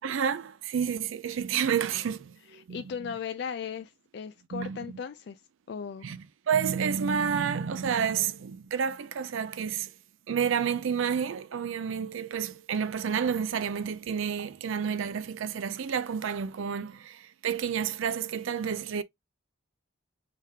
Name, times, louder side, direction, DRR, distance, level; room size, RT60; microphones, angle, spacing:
voice 1, 0.0-2.8 4.5-4.8 6.0-9.9 10.3-19.0, right 7 dB, 75° right, 0.4 m, -30 dB
voice 2, 2.7-5.4 5.7-6.1, left 7 dB, 55° left, 0.3 m, -37 dB
4.8 x 3.4 x 2.8 m
head